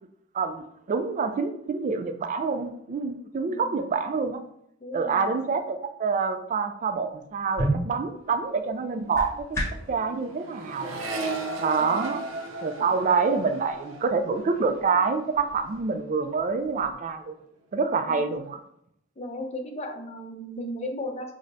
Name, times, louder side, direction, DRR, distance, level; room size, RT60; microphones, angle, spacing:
voice 1, 0.3-4.4 4.9-9.6 9.9-11.0 11.6-12.2 12.6-17.3 17.7-18.6, right 5 dB, 40° right, 8 dB, 0.3 m, -27 dB
voice 2, 4.8-5.2 11.8-11.9 12.8-12.9 18.0-18.2 19.2-21.3, left 1 dB, 35° left, 3 dB, 0.6 m, -36 dB
sound 1, 7.1-10.0, right 1 dB, 15° left, 0.9 m, -31 dB
Accelerating revving vroom, 8.0-8.2 8.5-16.0 16.3-16.9, right 2 dB, 85° right, 0.5 m, -37 dB
6.0 x 2.1 x 2.6 m, 0.73 s
head